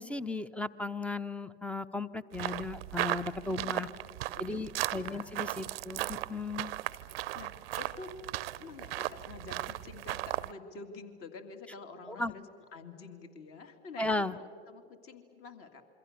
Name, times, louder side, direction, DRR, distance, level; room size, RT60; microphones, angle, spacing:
voice 1, 0.0-3.9 4.4-6.7 12.1-12.3 14.0-14.4, left 2 dB, 5° left, 17 dB, 0.6 m, -35 dB
sound 1, 2.3-10.5, right 16 dB, 60° right, 0.6 m, -37 dB
voice 2, 3.4-4.7 5.0-5.3 6.9-8.1 8.6-15.8, left 4 dB, 40° left, 7 dB, 2.5 m, -48 dB
27.0 x 24.0 x 6.7 m, 2.5 s
hypercardioid pair, 90°, 33 cm